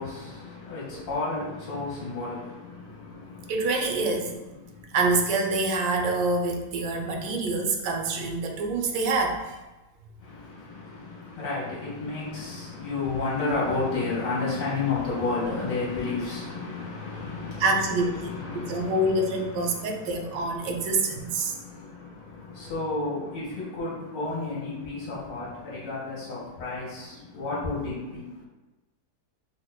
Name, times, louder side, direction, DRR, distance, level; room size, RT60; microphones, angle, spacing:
voice 1, 0.0-3.5 4.7-4.8 10.2-17.7 18.2-28.3, left 3 dB, 85° left, -7 dB, 1.8 m, -32 dB
voice 2, 3.5-4.3 4.9-9.6 17.6-21.5, right 2 dB, 85° right, 2 dB, 1.2 m, -26 dB
5.4 x 2.1 x 2.2 m, 1.1 s
omnidirectional pair, 1.8 m